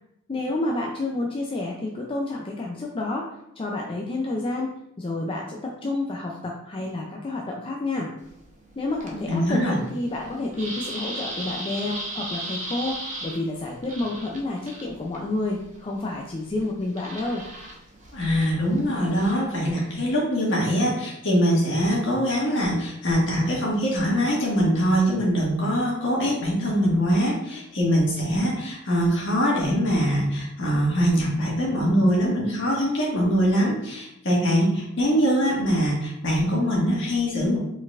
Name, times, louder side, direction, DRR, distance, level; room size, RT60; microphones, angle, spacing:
voice 1, 0.3-8.1 8.8-17.4, left 2 dB, 25° left, 0 dB, 0.4 m, -29 dB
sound 1, 8.2-20.2, right 1 dB, 35° right, 0.8 m, -38 dB
voice 2, 9.3-9.8 18.1-37.6, equal, 60° left, -4 dB, 1.6 m, -23 dB
4.7 x 3.9 x 2.4 m, 0.82 s
head